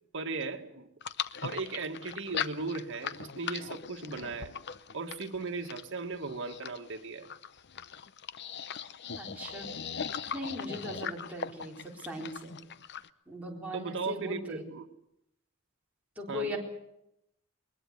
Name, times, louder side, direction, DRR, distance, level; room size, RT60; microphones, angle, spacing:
voice 1, 0.1-0.9 1.4-4.6 4.9-7.3 13.7-14.8 16.3-16.6, right 4 dB, 60° right, 5 dB, 2.0 m, -37 dB
sound 1, 1.0-13.1, left 7 dB, 55° left, 0.8 m, -39 dB
voice 2, 9.1-9.7 10.3-12.6 13.3-14.6 16.2-16.6, left 1 dB, 5° right, -3 dB, 4.0 m, -39 dB
21.5 x 20.5 x 8.2 m, 0.81 s
head